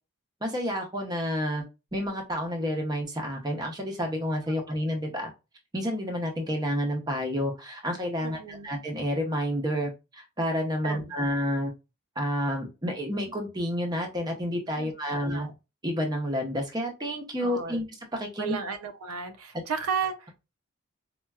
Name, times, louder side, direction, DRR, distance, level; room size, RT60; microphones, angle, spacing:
voice 1, 0.4-1.6 1.9-5.3 5.7-11.7 12.2-15.5 15.8-17.8 18.1-18.6, equal, 20° right, 0.6 m, -30 dB
voice 2, 8.2-8.7 10.8-11.2 14.8-15.5 17.4-17.8 18.4-20.5, right 6 dB, 85° right, 0.5 m, -34 dB
4.2 x 2.2 x 2.3 m
head